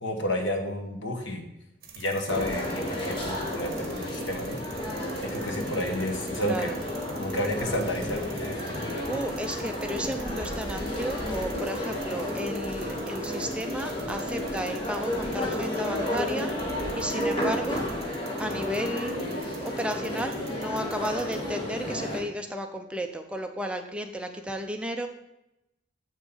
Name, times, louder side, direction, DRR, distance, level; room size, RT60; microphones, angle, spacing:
voice 1, 0.0-1.4 1.9-4.6 5.2-6.7 7.1-9.2, left 1 dB, 80° left, 4 dB, 1.4 m, -31 dB
sound 1, 1.8-21.4, right 7 dB, 50° right, 1.3 m, -49 dB
sound 2, 2.3-22.2, left 1 dB, 25° left, 1.9 m, -32 dB
voice 2, 6.4-6.8 8.5-16.7 17.0-17.9 18.4-19.1 19.6-25.1, equal, 5° right, 5 dB, 0.6 m, -33 dB
7.3 x 6.5 x 5.5 m, 0.89 s
head